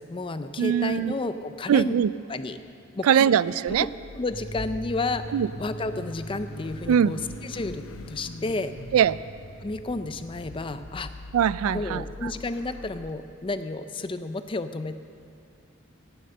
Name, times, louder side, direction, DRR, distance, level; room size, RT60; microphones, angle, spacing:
voice 1, 0.0-1.9 2.3-2.6 3.0-3.3 3.7-3.9 4.1-8.7 9.6-11.1 11.6-15.0, left 2 dB, 25° left, 11 dB, 0.4 m, -31 dB
voice 2, 0.6-1.1 1.7-2.1 3.0-3.9 5.3-5.5 6.9-7.2 8.9-9.2 11.3-12.3, right 8 dB, 90° right, 18 dB, 0.3 m, -22 dB
Car / Idling / Accelerating revving vroom, 3.7-13.1, left 2 dB, 90° left, 0.7 m, -43 dB
sound 1, 4.3-10.9, right 1 dB, 30° right, 3.0 m, -42 dB
17.0 x 7.7 x 6.6 m, 2.5 s
head